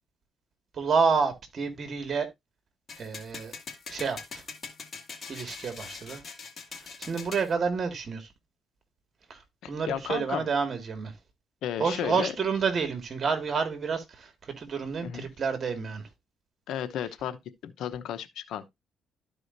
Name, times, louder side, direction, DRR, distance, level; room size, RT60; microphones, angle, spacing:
voice 1, 0.7-2.3 3.0-3.5 3.9-4.4 5.3-6.2 6.8-8.3 9.3-11.2 11.8-16.1, right 5 dB, 50° right, 2.1 m, -29 dB
sound 1, 2.9-7.5, left 5 dB, 45° left, 2.2 m, -42 dB
voice 2, 9.6-10.5 11.6-12.3 15.0-15.3 16.7-17.4 17.6-18.7, left 10 dB, 80° left, 0.9 m, -33 dB
13.0 x 4.9 x 2.7 m
cardioid pair, 90°, 0 cm